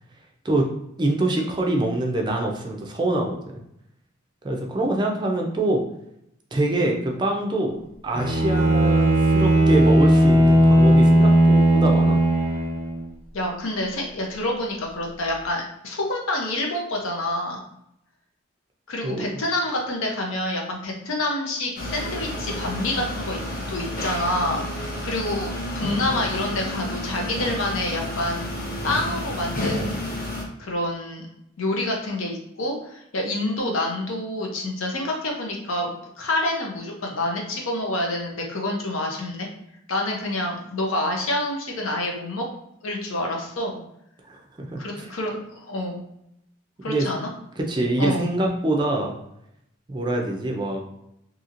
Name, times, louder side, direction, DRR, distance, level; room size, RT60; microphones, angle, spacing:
voice 1, 1.0-3.5 4.4-5.8 6.5-12.2 19.0-19.4 44.2-45.1 46.8-47.1 47.6-49.2 49.9-50.8, right 1 dB, 20° right, 1 dB, 0.4 m, -25 dB
Bowed string instrument, 8.1-13.0, right 1 dB, 5° left, 1.0 m, -17 dB
voice 2, 13.3-17.6 18.9-23.4 23.7-28.5 28.8-30.0 30.6-31.3 31.6-39.5 39.9-42.4 42.8-43.8 44.8-46.0 46.8-47.3 48.0-48.3, left 1 dB, 90° left, 0 dB, 0.7 m, -27 dB
sound 1, 21.8-30.4, left 1 dB, 45° left, 0.7 m, -30 dB
2.8 x 2.8 x 2.5 m, 0.79 s
head